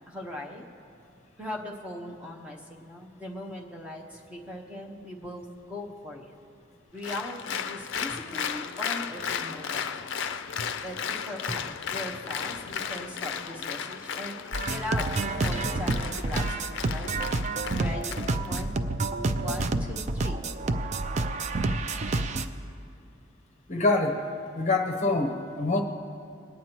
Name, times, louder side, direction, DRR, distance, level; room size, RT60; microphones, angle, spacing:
voice 1, 0.1-0.7 1.4-6.3 6.9-10.1 10.8-11.6 11.9-14.3 14.7-17.3 17.7-18.8 19.4-20.4, left 1 dB, 5° right, 0 dB, 1.0 m, -39 dB
Applause, 7.0-18.7, left 7 dB, 60° left, 0.5 m, -35 dB
sound 1, 14.5-22.5, right 2 dB, 35° right, 0.4 m, -29 dB
voice 2, 23.7-24.2 24.5-25.8, left 3 dB, 35° left, 2 dB, 0.9 m, -25 dB
23.0 x 9.4 x 3.0 m, 2.6 s
head